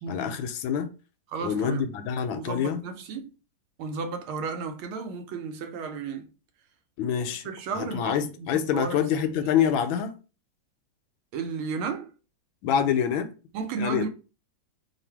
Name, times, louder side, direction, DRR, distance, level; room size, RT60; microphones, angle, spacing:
voice 1, 0.1-0.9 1.4-2.8 7.0-7.5 7.8-10.2 12.6-13.3 13.8-14.1, left 8 dB, 80° left, 1.3 m, -26 dB
voice 2, 1.3-1.9 2.3-3.3 3.8-6.3 7.4-9.0 11.3-12.1 13.5-14.1, right 5 dB, 80° right, 1.5 m, -33 dB
3.3 x 2.4 x 4.4 m
omnidirectional pair, 2.2 m